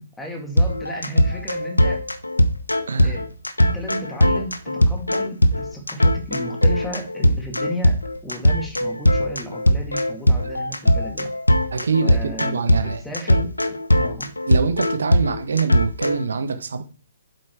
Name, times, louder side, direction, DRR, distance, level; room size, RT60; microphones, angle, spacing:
voice 1, 0.2-2.0 3.0-3.2 3.6-11.3 12.0-13.5 13.9-14.3, equal, 5° left, 2.4 m, -34 dB
sound 1, 0.6-16.2, equal, 80° left, 1.0 m, -19 dB
voice 2, 2.9-3.2 10.4-10.5 11.7-13.0 14.5-16.8, right 5 dB, 65° right, 1.2 m, -24 dB
8.3 x 7.7 x 4.7 m
figure-of-eight pair, 125°, 0 cm